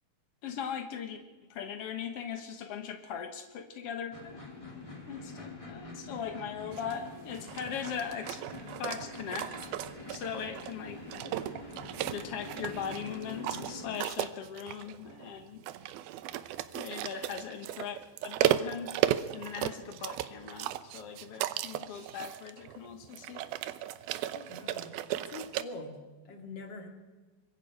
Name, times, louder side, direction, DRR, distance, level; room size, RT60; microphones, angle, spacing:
voice 1, 0.4-1.2 1.5-4.4 5.1-8.4 8.8-9.5 10.1-11.0 12.1-15.6 16.7-18.0 18.2-18.9 19.3-23.4, left 7 dB, 85° left, 6 dB, 1.3 m, -39 dB
sound 1, 4.1-14.0, left 2 dB, 10° left, 1.8 m, -45 dB
sound 2, 6.7-25.6, right 13 dB, 75° right, 2.4 m, -36 dB
voice 2, 24.3-26.9, left 2 dB, 35° left, 3 dB, 2.4 m, -45 dB
25.5 x 22.0 x 4.9 m, 1.3 s
omnidirectional pair, 4.6 m